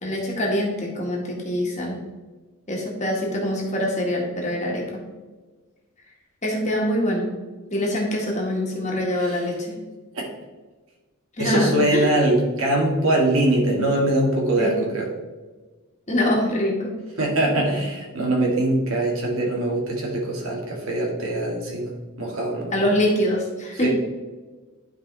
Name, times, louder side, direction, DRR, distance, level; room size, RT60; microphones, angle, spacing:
voice 1, 0.0-2.0 2.7-4.8 6.4-7.3 7.7-9.7 11.4-12.1 14.6-14.7 16.1-16.9 22.7-23.9, left 1 dB, 30° left, -2 dB, 1.7 m, -24 dB
voice 2, 11.4-15.1 17.2-21.9 22.2-22.8 23.8-23.9, right 1 dB, 70° right, -2 dB, 2.2 m, -22 dB
12.0 x 4.8 x 3.4 m, 1.3 s
head